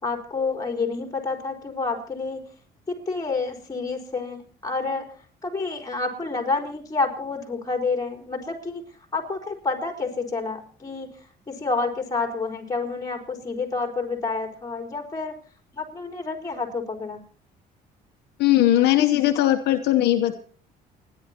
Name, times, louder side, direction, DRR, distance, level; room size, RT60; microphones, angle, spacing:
voice 1, 0.0-2.4 2.9-5.1 5.4-8.8 9.1-11.1 11.5-15.3 15.7-17.2, left 4 dB, 20° left, 3 dB, 4.2 m, -29 dB
voice 2, 18.4-20.3, left 13 dB, 80° left, 5 dB, 1.0 m, -19 dB
29.5 x 11.0 x 2.9 m, 0.43 s
cardioid pair, 110°, 17 cm